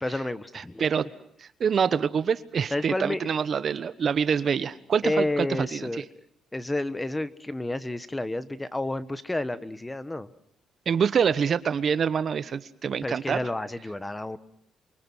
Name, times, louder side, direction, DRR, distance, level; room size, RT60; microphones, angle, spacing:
voice 1, 0.0-0.8 2.7-3.3 5.0-6.3 6.5-10.3 13.0-14.4, left 1 dB, 15° left, 13 dB, 1.2 m, -30 dB
voice 2, 1.6-5.9 10.9-13.4, right 7 dB, 50° right, 14 dB, 1.1 m, -25 dB
29.0 x 24.0 x 6.2 m, 0.68 s
cardioid pair, 90°, 0 cm